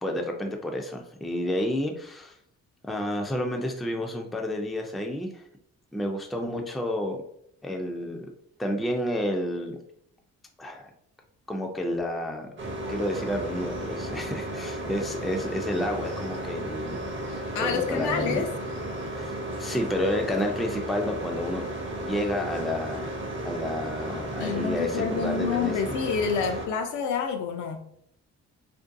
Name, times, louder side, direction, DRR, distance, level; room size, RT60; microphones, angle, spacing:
voice 1, 0.0-2.3 2.8-5.4 5.9-7.2 7.6-8.3 8.6-9.8 10.6-10.9 11.5-12.5 12.9-17.1 17.6-18.4 19.1-21.7 22.0-23.1 23.4-25.9, left 1 dB, ahead, 2 dB, 0.3 m, -30 dB
sound 1, 12.6-26.7, right 1 dB, 40° right, 0.6 m, -34 dB
voice 2, 17.5-18.5 24.4-27.8, left 6 dB, 75° left, 5 dB, 0.5 m, -28 dB
2.6 x 2.2 x 2.5 m, 0.70 s
cardioid pair, 90°, 30 cm